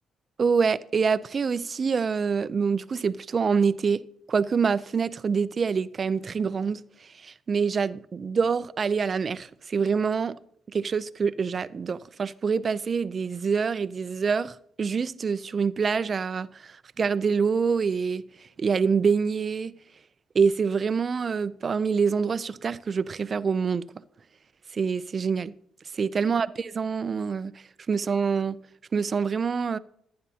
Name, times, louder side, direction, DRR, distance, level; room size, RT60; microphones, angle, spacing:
voice 1, 0.4-10.3 10.7-18.2 18.6-19.7 20.3-23.9 24.7-25.5 26.0-27.5 27.9-28.6 28.9-29.8, right 5 dB, 40° right, 0.4 m, -26 dB
15.0 x 9.5 x 2.8 m
cardioid pair, 90°, 0 cm